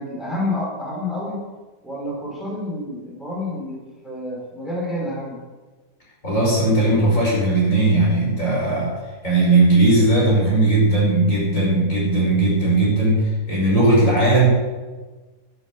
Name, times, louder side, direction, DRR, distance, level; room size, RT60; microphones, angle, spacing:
voice 1, 0.0-1.4 1.8-5.4, left 1 dB, ahead, -4 dB, 4.9 m, -29 dB
voice 2, 6.2-8.9 9.2-14.5, right 2 dB, 50° left, -4 dB, 5.7 m, -18 dB
12.0 x 11.0 x 6.9 m, 1.3 s
omnidirectional pair, 1.8 m